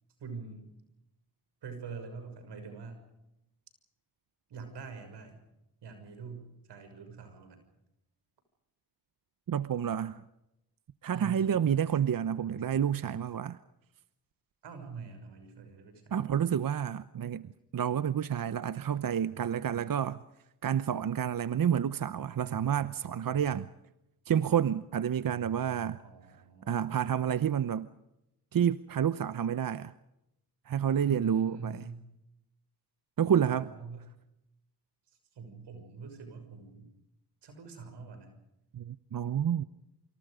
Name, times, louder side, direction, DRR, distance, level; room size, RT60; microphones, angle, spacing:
voice 1, 0.2-0.7 1.6-3.0 4.5-5.4 5.8-7.6 11.1-11.8 14.6-16.2 26.0-27.2 31.0-32.0 33.3-34.0 35.3-36.9 37.4-38.3, right 5 dB, 90° right, 6.4 m, -44 dB
voice 2, 9.5-10.2 11.0-13.6 16.1-20.2 20.6-23.7 24.3-26.0 26.7-27.9 28.5-29.9 30.7-31.9 33.2-33.7 38.7-39.6, right 9 dB, 55° right, 0.9 m, -29 dB
28.0 x 26.0 x 5.1 m
cardioid pair, 60°, 40 cm